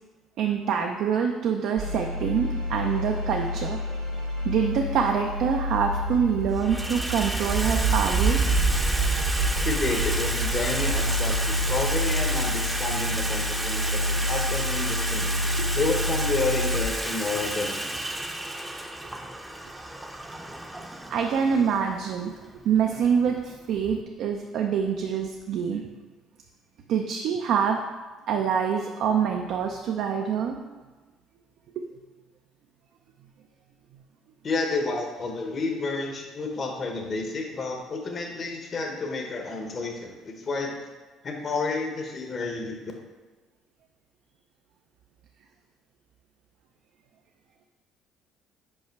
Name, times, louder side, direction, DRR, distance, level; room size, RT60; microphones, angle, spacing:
voice 1, 0.4-3.8 4.4-8.6 21.1-22.3 22.6-25.8 26.9-27.8 28.3-30.7, right 7 dB, 70° right, 3 dB, 0.5 m, -25 dB
sound 1, 1.8-16.9, right 1 dB, 85° right, 2.0 m, -27 dB
Water tap faucet / Sink (filling or washing), 4.6-4.8 5.7-6.1 6.4-24.0, right 1 dB, 10° right, 0.6 m, -32 dB
voice 2, 9.6-15.3 15.7-18.0 34.4-40.8 41.2-42.8, left 3 dB, 40° left, 2 dB, 1.0 m, -30 dB
5.4 x 4.9 x 4.6 m, 1.3 s
supercardioid pair, 85°, 0 cm